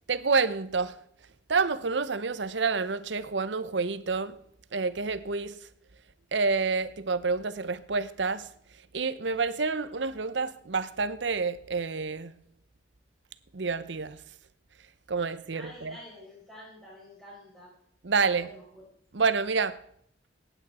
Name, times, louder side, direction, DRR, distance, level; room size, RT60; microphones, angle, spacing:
voice 1, 0.1-1.0 1.5-4.4 4.7-5.6 6.3-8.5 8.9-12.3 13.5-14.2 15.1-15.9 18.0-18.5 19.1-19.8, right 4 dB, 70° right, 0.8 m, -28 dB
voice 2, 15.5-17.7 18.3-18.9, left 1 dB, ahead, 5.8 m, -48 dB
17.5 x 9.2 x 4.3 m
head